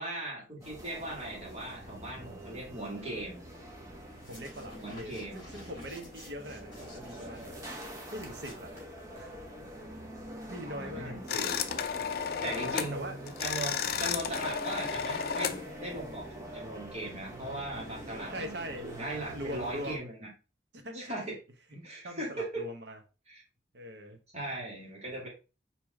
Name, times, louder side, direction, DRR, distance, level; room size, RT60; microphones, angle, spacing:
voice 1, 0.0-3.4 4.7-5.4 7.1-7.3 10.7-11.6 12.4-20.3 20.9-21.4 21.7-22.6 23.3-23.4 24.3-25.3, right 1 dB, 35° right, 1.9 m, -39 dB
sound 1, 0.6-20.0, right 1 dB, 15° right, 0.9 m, -45 dB
sound 2, 4.1-9.4, left 1 dB, 25° left, 2.7 m, -54 dB
voice 2, 4.3-7.6 8.1-8.7 9.1-9.3 10.5-11.2 12.3-13.2 18.3-18.9 19.3-20.1 20.7-21.3 22.0-23.0 23.7-24.2, equal, 65° right, 0.9 m, -42 dB
sound 3, 11.3-13.0 13.3-15.6, left 7 dB, 55° left, 0.4 m, -33 dB
4.7 x 2.9 x 3.5 m
head